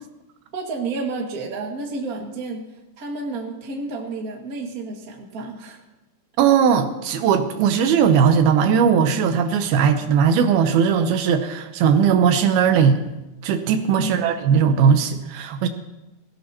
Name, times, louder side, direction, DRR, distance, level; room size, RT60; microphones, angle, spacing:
voice 1, 0.5-2.6 3.0-5.8 14.0-14.1, right 3 dB, 35° right, 0 dB, 1.7 m, -30 dB
voice 2, 6.4-13.0 13.4-15.7, right 7 dB, 80° right, 8 dB, 2.7 m, -18 dB
22.0 x 16.5 x 2.9 m, 1.0 s
omnidirectional pair, 4.5 m